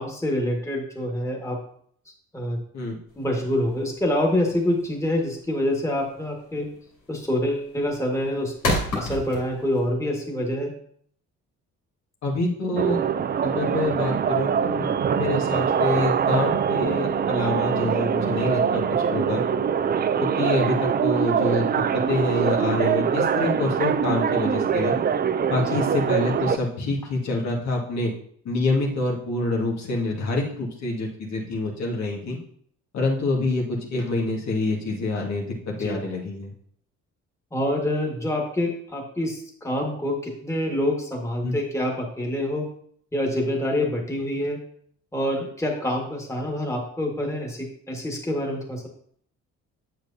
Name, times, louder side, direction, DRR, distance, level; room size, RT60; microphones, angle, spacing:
voice 1, 0.0-1.6 2.3-2.6 3.2-6.7 7.1-10.7 35.8-36.0 37.5-42.7 43.1-44.6 45.1-48.9, left 1 dB, 10° left, -1 dB, 1.7 m, -26 dB
sound 1, 3.1-9.9, left 1 dB, 80° left, 2.8 m, -31 dB
voice 2, 12.2-13.0 13.4-18.8 19.1-19.4 20.2-21.7 21.9-25.0 25.5-28.1 28.5-32.4 32.9-36.5 41.4-41.6, left 2 dB, 65° left, -1 dB, 1.8 m, -26 dB
sound 2, 12.8-26.6, right 7 dB, 35° right, 0.4 m, -23 dB
7.8 x 6.9 x 2.7 m, 0.62 s
cardioid pair, 90°, 30 cm